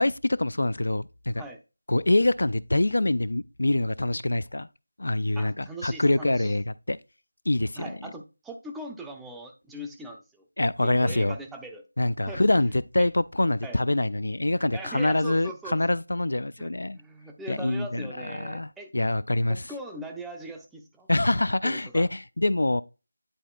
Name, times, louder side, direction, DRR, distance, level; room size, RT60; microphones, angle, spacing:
voice 1, 0.0-1.4 1.9-4.7 5.0-7.0 7.5-8.0 10.6-11.4 12.0-17.0 17.5-19.6 21.1-22.8, left 2 dB, 70° left, 0.3 m, -25 dB
voice 2, 5.4-6.5 7.8-10.5 10.8-11.8 12.3-12.5 13.0-13.1 13.6-13.8 14.7-15.8 16.6-18.9 19.5-21.1 21.6-22.1, right 1 dB, 5° right, 0.5 m, -40 dB
10.0 x 4.0 x 2.3 m
figure-of-eight pair, 165°, 0 cm